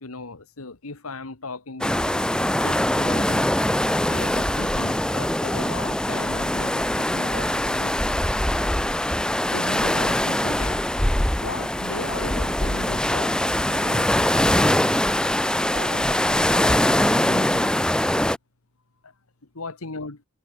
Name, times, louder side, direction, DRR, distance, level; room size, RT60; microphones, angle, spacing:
voice 1, 0.0-2.3 2.6-3.4 4.1-8.1 9.4-10.8 11.4-13.3 13.6-14.8 15.7-17.7 19.5-20.2, left 3 dB, 85° left, 1.7 m, -37 dB
sound 1, 1.8-18.4, left 1 dB, 5° left, 0.6 m, -22 dB
head